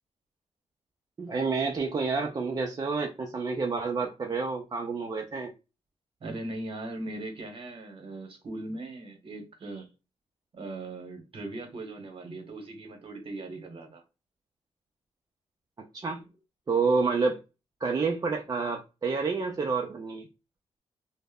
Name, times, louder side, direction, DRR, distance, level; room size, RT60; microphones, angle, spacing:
voice 1, 1.2-5.5 15.9-16.2 16.7-17.4 17.8-20.3, right 4 dB, 35° right, 0.4 m, -29 dB
voice 2, 6.2-9.9 10.5-14.0, right 2 dB, 50° right, 0.9 m, -39 dB
2.0 x 2.0 x 3.5 m
cardioid pair, 70°, 12 cm